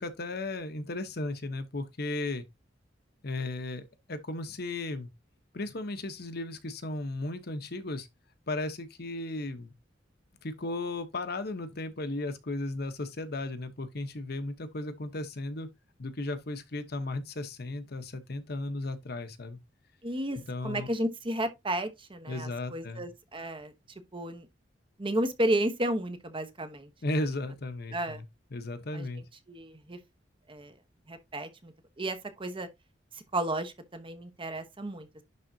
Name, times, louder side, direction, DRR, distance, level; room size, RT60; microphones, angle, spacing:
voice 1, 0.0-2.4 3.2-5.1 5.5-8.1 8.5-9.7 10.4-15.7 16.0-19.6 20.3-20.9 22.3-23.1 27.0-29.2, left 2 dB, 60° left, 1.0 m, -35 dB
voice 2, 20.0-20.4 20.6-23.7 24.1-24.5 25.0-26.9 27.9-28.2 28.9-29.1 29.5-30.0 30.5-30.7 31.1-31.7 32.0-32.7 33.1-35.2, right 1 dB, 30° right, 1.0 m, -32 dB
11.0 x 3.8 x 2.7 m
head